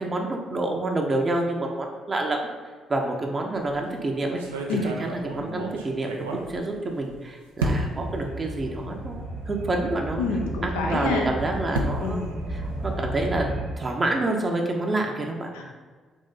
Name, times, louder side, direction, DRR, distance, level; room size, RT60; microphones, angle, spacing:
voice 1, 0.0-2.5 2.9-4.4 4.8-10.2 10.6-12.2 12.5-15.5, right 2 dB, 35° right, 1 dB, 0.7 m, -28 dB
sound 1, 3.5-3.8 4.4-7.1 7.6-8.1 8.9-9.0 9.3-9.4 11.0-13.4, right 2 dB, 85° right, 0.4 m, -32 dB
sound 2, 7.6-13.7, right 1 dB, 60° right, 1.2 m, -34 dB
voice 2, 10.2-11.3 12.0-12.4 15.5-15.6, left 3 dB, 80° left, 1 dB, 0.6 m, -27 dB
4.0 x 3.1 x 3.7 m, 1.4 s
hypercardioid pair, 45°, 0 cm